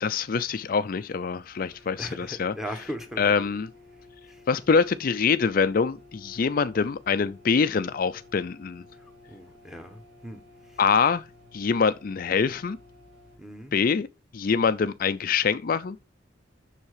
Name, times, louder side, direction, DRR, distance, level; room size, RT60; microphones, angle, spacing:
voice 1, 0.0-2.6 3.2-3.7 4.5-8.8 10.8-11.2 11.5-12.8 13.7-14.1 14.3-16.0, left 5 dB, 45° left, 0.4 m, -24 dB
sound 1, 1.6-13.4, left 3 dB, 80° right, 4.8 m, -53 dB
voice 2, 2.0-3.3 9.3-10.4 13.4-13.7, equal, ahead, 1.2 m, -38 dB
7.2 x 6.6 x 4.8 m
head